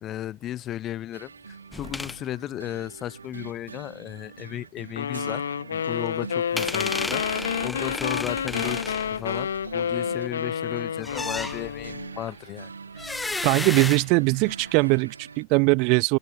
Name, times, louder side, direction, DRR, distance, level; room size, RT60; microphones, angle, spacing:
voice 1, 0.0-5.4 5.7-12.7, left 12 dB, 30° left, 1.0 m, -35 dB
sound 1, 1.1-15.4, right 5 dB, 75° right, 2.1 m, -44 dB
sound 2, 1.7-2.2 6.6-9.8 11.0-12.0 13.0-14.7, left 2 dB, 10° left, 0.7 m, -33 dB
sound 3, 5.0-12.1, left 7 dB, 70° left, 0.5 m, -29 dB
voice 2, 13.4-16.2, right 33 dB, 45° right, 0.7 m, -21 dB
open air
figure-of-eight pair, 90°, 0 cm